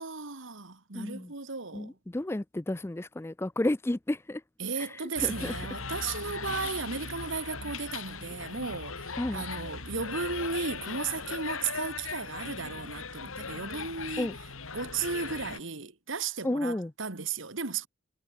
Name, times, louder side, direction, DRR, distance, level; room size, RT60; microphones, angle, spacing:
voice 1, 0.0-2.0 4.6-14.3 14.7-17.9, right 5 dB, 70° right, 1.9 m, -35 dB
voice 2, 0.9-1.3 1.7-4.4 4.8-4.9 5.2-5.5 9.2-9.4 14.2-14.3 16.4-16.9, left 1 dB, 10° left, 0.4 m, -31 dB
sound 1, 5.2-15.6, left 5 dB, 85° left, 2.7 m, -39 dB
head